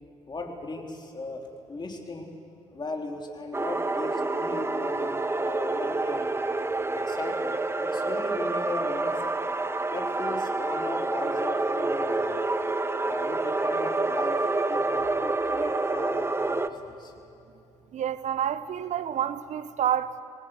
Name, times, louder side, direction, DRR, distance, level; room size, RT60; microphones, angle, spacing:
voice 1, 0.3-2.3 2.7-6.3 6.9-9.3 9.9-12.4 13.0-14.4 14.7-17.1, left 2 dB, 30° left, 3.6 m, -37 dB
sound 1, 3.5-16.7, right 2 dB, 15° right, 1.0 m, -28 dB
voice 2, 17.9-20.2, right 9 dB, 55° right, 0.9 m, -28 dB
26.0 x 18.5 x 6.6 m
hypercardioid pair, 45°, 15 cm